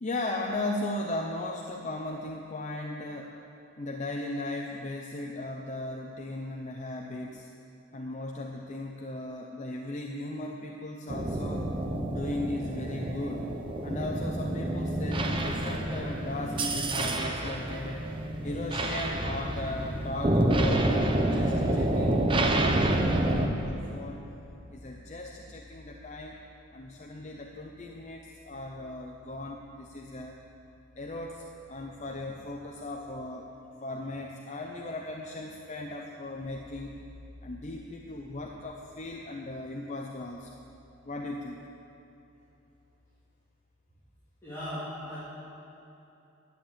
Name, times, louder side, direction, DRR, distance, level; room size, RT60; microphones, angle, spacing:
voice 1, 0.0-3.4 3.8-7.5 7.9-11.7 12.1-13.5 13.8-24.3 24.7-26.4 26.7-30.4 31.0-33.5 33.8-37.0 37.4-40.6 41.0-41.6, left 2 dB, 35° left, 1 dB, 0.6 m, -37 dB
sound 1, 11.1-23.5, right 1 dB, 25° right, 0.8 m, -28 dB
voice 2, 44.4-45.2, equal, 15° left, -14 dB, 2.9 m, -37 dB
11.5 x 7.5 x 8.7 m, 2.9 s
head